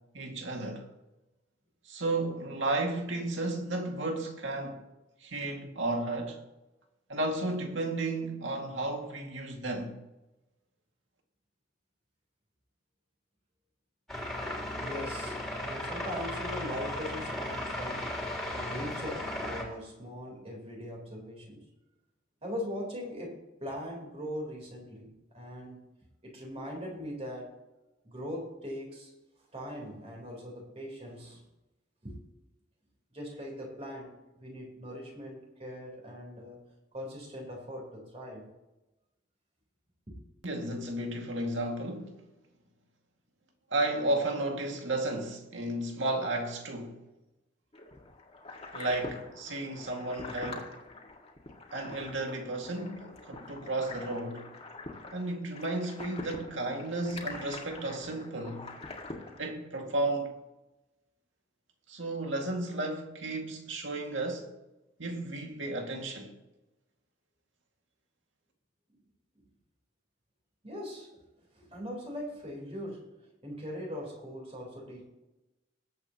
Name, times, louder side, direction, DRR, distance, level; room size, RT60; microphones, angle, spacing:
voice 1, 0.1-0.9 1.9-4.8 5.2-6.4 7.1-10.0 40.4-42.2 43.7-47.0 48.7-50.7 51.7-54.5 55.1-58.7 59.4-60.4 61.9-64.5 65.0-66.3, right 2 dB, 75° right, 2.2 m, -33 dB
sound 1, 14.1-19.6, left 1 dB, ahead, 3.1 m, -36 dB
voice 2, 14.7-18.1 18.5-21.6 22.4-25.8 26.2-27.5 28.0-29.1 29.5-31.4 32.0-32.2 33.1-36.6 36.9-38.5 40.1-40.2 70.6-71.1 71.5-73.1 73.4-75.0, equal, 30° right, 3.9 m, -40 dB
sound 2, 47.7-59.5, left 2 dB, 30° left, 2.1 m, -45 dB
21.0 x 8.5 x 3.0 m
head